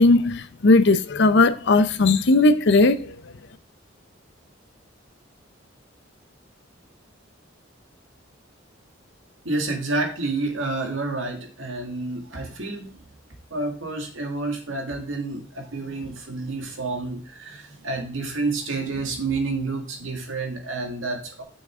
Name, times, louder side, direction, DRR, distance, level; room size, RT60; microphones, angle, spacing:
voice 1, 0.0-3.1, left 2 dB, 60° left, 0.6 m, -17 dB
voice 2, 9.4-13.0 13.5-21.4, right 3 dB, 85° right, 2.0 m, -29 dB
7.0 x 6.3 x 3.6 m
head